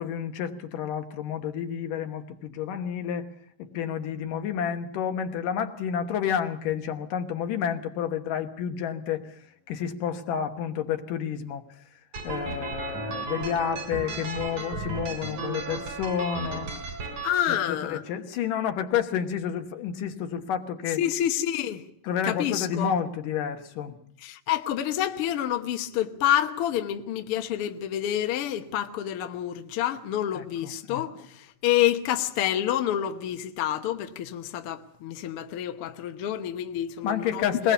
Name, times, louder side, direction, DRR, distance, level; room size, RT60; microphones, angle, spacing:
voice 1, 0.0-3.3 3.6-9.3 9.7-11.6 12.2-16.7 17.5-21.0 22.0-24.0 30.3-30.7 37.0-37.7, left 8 dB, 80° left, 2.9 m, -30 dB
sound 1, 12.1-17.3, right 3 dB, 75° right, 5.8 m, -34 dB
voice 2, 17.2-18.0 21.0-21.8 22.3-22.9 24.2-37.7, left 11 dB, 60° left, 1.5 m, -28 dB
21.5 x 20.0 x 6.8 m
omnidirectional pair, 3.8 m